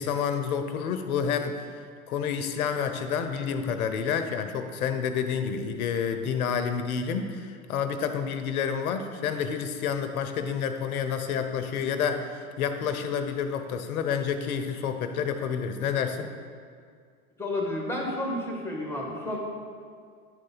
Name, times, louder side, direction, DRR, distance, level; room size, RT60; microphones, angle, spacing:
voice 1, 0.0-1.6 2.1-16.3, left 7 dB, 70° left, 8 dB, 0.8 m, -29 dB
voice 2, 17.4-19.4, left 1 dB, 5° left, -1 dB, 1.4 m, -31 dB
10.5 x 3.8 x 4.0 m, 2.1 s
hypercardioid pair, 85°, 45 cm